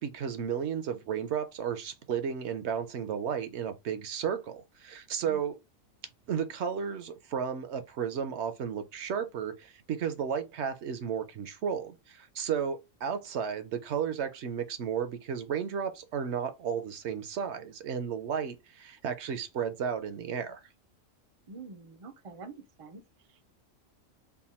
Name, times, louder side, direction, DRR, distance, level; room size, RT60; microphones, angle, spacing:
voice 1, 0.0-5.6 6.3-20.6, right 7 dB, 65° right, 0.8 m, -33 dB
voice 2, 21.5-23.0 23.3-23.4, right 4 dB, 50° right, 0.4 m, -46 dB
3.5 x 2.2 x 4.1 m
omnidirectional pair, 1.4 m